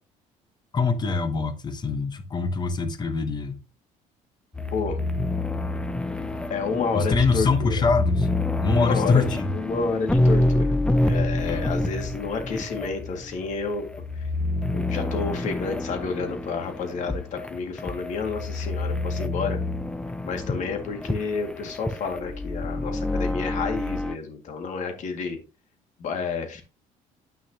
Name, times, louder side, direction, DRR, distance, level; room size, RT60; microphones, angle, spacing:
voice 1, 0.7-3.5 6.9-8.3 8.6-9.5 11.4-11.7, left 4 dB, 30° left, 1.0 m, -24 dB
sound 1, 4.5-24.2, left 2 dB, 5° left, 0.6 m, -27 dB
voice 2, 6.2-7.8 8.7-9.2 9.5-10.8 11.0-13.9 14.2-14.3 14.7-19.6 20.2-25.4 26.0-26.6, left 5 dB, 60° left, 2.1 m, -30 dB
9.1 x 6.1 x 2.8 m
cardioid pair, 120°, 14 cm